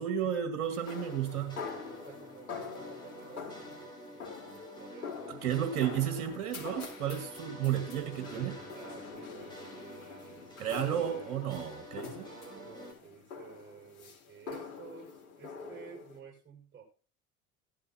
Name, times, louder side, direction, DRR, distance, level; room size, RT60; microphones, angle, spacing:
voice 1, 0.0-1.6 5.4-8.6 10.6-12.3, right 9 dB, 55° right, 5 dB, 2.0 m, -32 dB
sound 1, 0.7-16.2, left 5 dB, 70° left, 4.2 m, -46 dB
sound 2, 0.8-12.9, equal, 10° left, 7.4 m, -49 dB
voice 2, 1.8-6.3 7.7-8.0 8.7-11.5 12.2-16.8, right 7 dB, 25° right, -2 dB, 5.9 m, -53 dB
16.5 x 12.0 x 2.9 m, 0.42 s
figure-of-eight pair, 75°, 44 cm